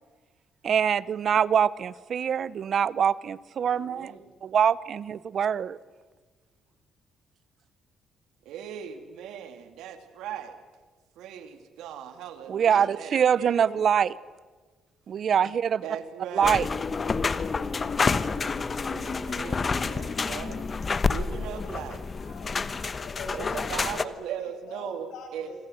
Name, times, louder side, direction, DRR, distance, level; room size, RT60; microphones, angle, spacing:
voice 1, 0.6-4.1 4.4-5.8 12.5-14.1 15.1-15.8 16.3-16.6, right 8 dB, 55° right, 20 dB, 0.7 m, -24 dB
voice 2, 3.6-4.3 8.4-10.6 11.2-13.9 15.8-16.6 18.9-20.6 21.0-22.0 23.3-25.5, right 8 dB, 90° right, 8 dB, 2.7 m, -39 dB
sound 1, 16.4-24.0, left 4 dB, 35° left, 1.1 m, -29 dB
voice 3, 21.2-21.6 22.2-24.1 24.7-25.6, left 4 dB, 85° left, 3 dB, 7.1 m, -43 dB
27.5 x 24.5 x 7.9 m, 1.3 s
cardioid pair, 90°, 0 cm